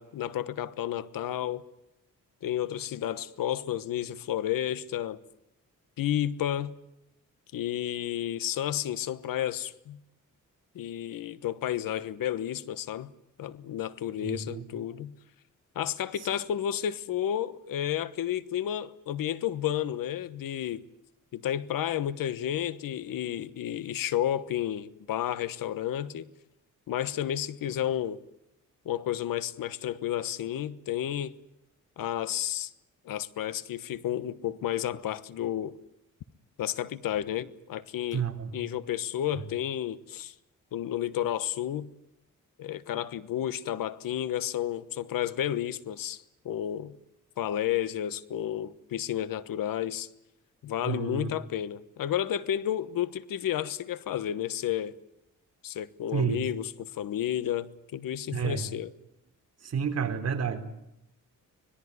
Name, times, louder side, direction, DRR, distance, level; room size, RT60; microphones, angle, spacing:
voice 1, 0.0-1.6 2.4-5.2 6.0-6.8 7.5-10.0 10.7-13.1 13.4-15.1 15.7-20.8 21.3-26.3 26.9-28.2 28.8-31.3 32.0-32.7 33.0-35.7 36.6-38.2 38.5-40.3 40.7-41.9 42.6-47.0 47.4-50.1 50.6-55.0 55.6-58.9, left 11 dB, 90° left, 1.3 m, -31 dB
voice 2, 14.2-14.7 16.2-16.3 38.1-38.6 39.3-39.4 50.8-51.3 56.1-56.4 58.3-58.6 59.6-60.6, right 7 dB, 50° right, 3.9 m, -30 dB
25.0 x 20.5 x 9.6 m
wide cardioid pair, 140°, 33 cm